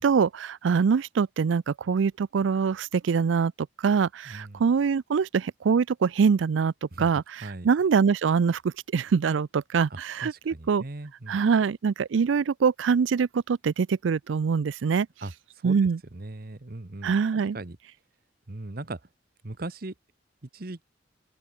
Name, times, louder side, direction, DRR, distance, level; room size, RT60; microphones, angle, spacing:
voice 1, 0.0-3.5 3.8-6.7 7.0-8.6 8.9-10.8 11.3-15.1 15.6-16.0 17.0-17.6, right 6 dB, 80° right, 0.4 m, -24 dB
voice 2, 4.3-4.6 6.9-7.7 9.9-11.4 15.2-15.8 16.1-17.8 18.5-19.0 19.4-19.9 20.4-20.8, right 2 dB, 50° right, 1.2 m, -39 dB
open air
head